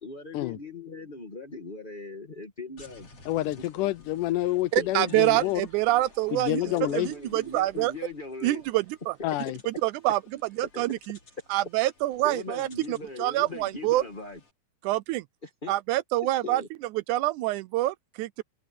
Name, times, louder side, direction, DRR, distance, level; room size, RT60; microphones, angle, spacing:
voice 1, 0.0-3.1 4.8-5.5 6.6-8.6 10.7-10.9 12.2-14.4 15.4-15.7 16.4-16.7, left 3 dB, 20° left, 1.5 m, -40 dB
sound 1, 2.8-14.5, left 3 dB, 50° left, 5.9 m, -55 dB
voice 2, 3.3-5.6 6.3-7.1 9.2-9.6, left 15 dB, 85° left, 2.3 m, -28 dB
voice 3, 4.7-6.6 6.9-7.9 8.4-9.2 9.7-10.2 10.6-11.2 11.5-14.0 14.8-15.2 15.7-16.6 16.9-18.4, right 16 dB, 80° right, 2.0 m, -26 dB
omnidirectional pair, 3.6 m